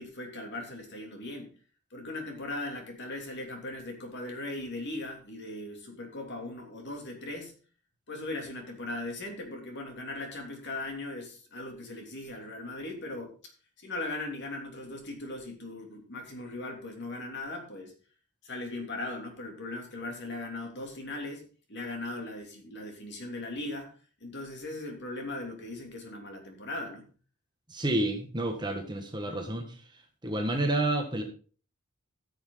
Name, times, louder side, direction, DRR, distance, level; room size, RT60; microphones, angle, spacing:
voice 1, 0.0-1.5 1.9-7.5 8.1-13.4 13.8-17.9 18.4-27.1, left 2 dB, 50° left, 3 dB, 2.9 m, -39 dB
voice 2, 27.7-29.7 30.2-31.2, right 1 dB, 20° right, 3 dB, 1.6 m, -29 dB
14.0 x 7.2 x 3.9 m, 0.38 s
head